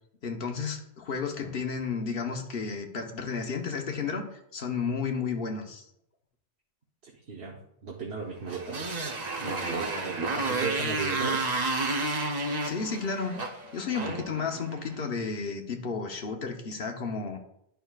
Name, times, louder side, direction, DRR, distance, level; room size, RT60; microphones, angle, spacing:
voice 1, 0.2-5.8 12.6-17.4, left 5 dB, 70° left, 4 dB, 1.1 m, -32 dB
voice 2, 7.0-8.9 9.4-11.5 14.0-14.2, right 5 dB, 85° right, -2 dB, 1.3 m, -36 dB
Motorcycle, 8.4-15.0, right 2 dB, 45° right, 0.9 m, -31 dB
11.0 x 5.7 x 2.4 m, 0.77 s
omnidirectional pair, 1.0 m